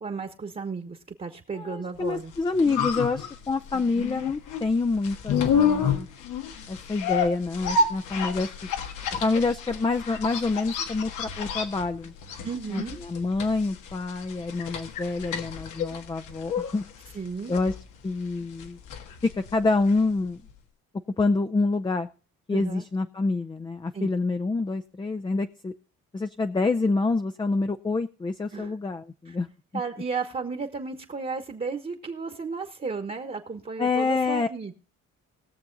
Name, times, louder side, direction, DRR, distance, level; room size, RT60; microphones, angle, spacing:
voice 1, 0.0-2.3 12.4-13.0 17.1-17.5 22.5-22.8 23.9-24.1 28.5-28.7 29.3-29.4 29.7-34.7, right 4 dB, 30° right, 6 dB, 1.3 m, -34 dB
voice 2, 1.5-6.1 6.7-8.5 9.2-12.1 12.7-16.8 17.5-17.7 18.0-18.8 19.2-20.4 21.2-22.1 22.5-25.7 26.1-29.5 33.8-34.5, left 3 dB, 15° left, 7 dB, 0.5 m, -27 dB
sound 1, 2.2-20.2 20.5-20.6, left 6 dB, 85° left, 1.6 m, -30 dB
20.0 x 6.9 x 3.9 m, 0.36 s
cardioid pair, 90°, 30 cm